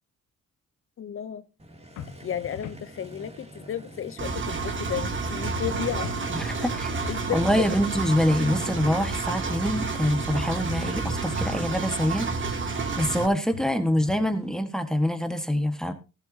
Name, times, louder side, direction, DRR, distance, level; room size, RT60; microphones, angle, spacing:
voice 1, 1.0-1.4 2.2-6.1 7.1-7.8, left 9 dB, 45° left, 13 dB, 0.7 m, -33 dB
Motorcycle, 1.6-14.6, right 1 dB, 20° right, 2.7 m, -47 dB
sound 1, 2.0-2.9 6.0-6.9 10.0-10.9 13.5-14.4, left 9 dB, 80° left, 1.5 m, -43 dB
Engine, 4.2-13.3, right 4 dB, 40° right, 2.2 m, -30 dB
voice 2, 6.3-6.9 7.3-12.3 13.0-15.9, equal, ahead, 8 dB, 1.5 m, -25 dB
15.0 x 12.5 x 2.8 m, 0.30 s
cardioid pair, 90°, 30 cm